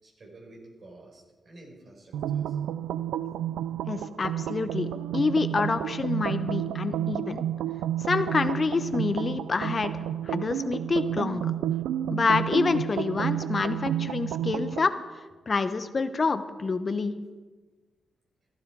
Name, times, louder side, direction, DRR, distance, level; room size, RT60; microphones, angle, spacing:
voice 1, 0.0-2.6, right 2 dB, 55° right, -1 dB, 5.1 m, -50 dB
sound 1, 2.1-14.9, right 11 dB, 90° right, 0.4 m, -31 dB
voice 2, 3.9-4.9 5.1-7.4 8.0-9.9 10.2-11.4 12.1-14.9 15.5-17.1, left 4 dB, 45° left, 10 dB, 0.9 m, -27 dB
15.5 x 12.5 x 4.7 m, 1.3 s
supercardioid pair, 50°, 0 cm